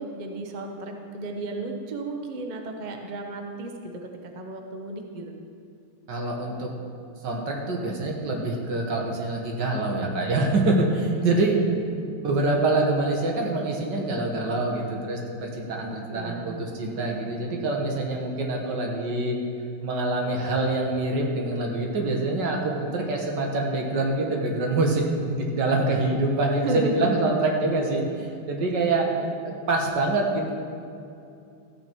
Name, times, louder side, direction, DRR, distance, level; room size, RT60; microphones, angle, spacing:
voice 1, 0.0-4.1 4.3-5.4 16.1-16.5 26.6-27.3 29.2-29.3 29.8-30.0, right 2 dB, 90° right, 3 dB, 0.4 m, -33 dB
voice 2, 6.1-6.7 7.2-11.6 11.9-19.4 19.8-30.5, right 2 dB, 55° right, 0 dB, 1.9 m, -25 dB
14.0 x 8.8 x 4.5 m, 2.6 s
omnidirectional pair, 2.4 m